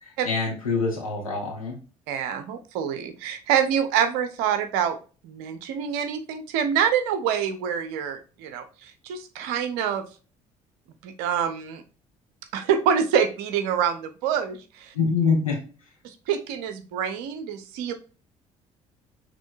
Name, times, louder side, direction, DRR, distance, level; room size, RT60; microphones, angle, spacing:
voice 1, 0.0-1.8 14.9-15.6, left 4 dB, 90° left, -2 dB, 1.2 m, -25 dB
voice 2, 2.1-5.0 5.2-10.1 11.0-11.8 12.5-14.9 16.0-17.9, right 8 dB, 65° right, 10 dB, 0.7 m, -26 dB
6.3 x 3.0 x 2.6 m, 0.35 s
figure-of-eight pair, 50°, 17 cm